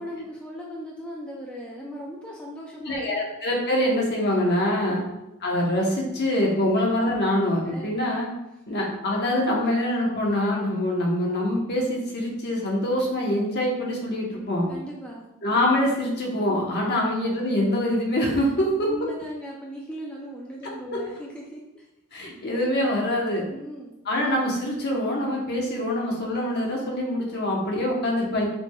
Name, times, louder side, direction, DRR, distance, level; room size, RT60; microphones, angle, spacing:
voice 1, 0.0-3.2 4.9-5.1 7.7-7.9 14.7-15.3 16.9-17.0 18.8-21.9 23.5-24.0, equal, 5° left, -3 dB, 0.5 m, -38 dB
voice 2, 2.9-5.0 5.4-8.3 8.7-14.7 15.4-18.9 20.9-21.0 22.1-23.4 24.1-28.5, left 1 dB, 50° left, -2 dB, 1.0 m, -24 dB
5.8 x 3.3 x 2.3 m, 0.91 s
head